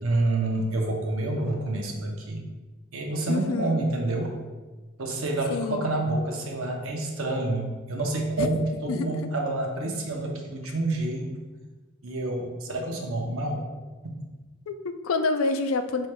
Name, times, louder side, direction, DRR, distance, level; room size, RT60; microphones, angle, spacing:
voice 1, 0.0-2.5 2.9-4.4 5.0-11.4 12.0-13.7 14.0-14.2, right 2 dB, 85° right, 1 dB, 0.7 m, -28 dB
voice 2, 3.3-3.8 5.5-5.9 8.4-8.5 8.9-9.1 14.7-16.1, left 3 dB, 85° left, 8 dB, 0.4 m, -27 dB
4.7 x 4.3 x 2.2 m, 1.2 s
head